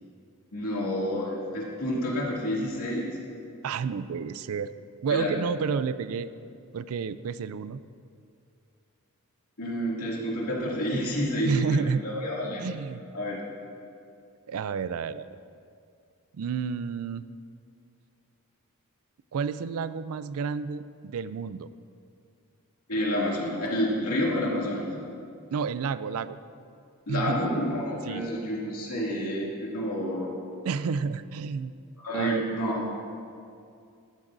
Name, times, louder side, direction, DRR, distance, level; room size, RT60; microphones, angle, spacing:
voice 1, 0.5-3.2 5.1-5.3 9.6-12.7 13.1-13.4 22.9-24.9 27.1-30.3 32.0-32.9, equal, 80° left, -4 dB, 2.4 m, -29 dB
voice 2, 3.6-4.7 5.0-6.3 6.7-7.8 11.4-12.0 12.6-13.0 14.5-15.3 16.3-17.2 19.3-21.7 25.5-26.4 27.1-27.4 28.0-28.3 30.6-31.7 32.1-32.4, right 5 dB, 70° right, 15 dB, 0.4 m, -30 dB
13.5 x 12.0 x 2.6 m, 2.4 s
head